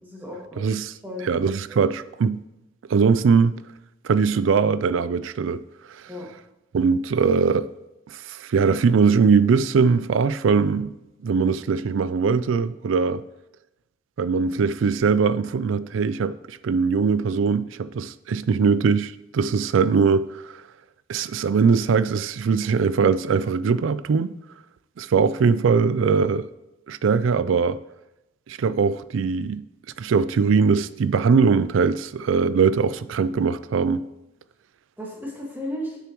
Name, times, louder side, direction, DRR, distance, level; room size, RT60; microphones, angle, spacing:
voice 1, 0.0-0.7 1.0-1.2 6.1-6.3 35.0-36.0, left 1 dB, 10° right, 1.8 m, -34 dB
voice 2, 0.6-0.9 1.2-2.4 2.9-3.6 4.0-5.6 5.9-6.0 6.7-7.7 8.1-11.0 11.2-13.2 14.2-20.6 21.1-24.3 25.0-26.5 26.9-27.8 28.5-29.6 30.0-34.1, right 5 dB, 85° right, 0.4 m, -21 dB
9.3 x 6.9 x 3.0 m
head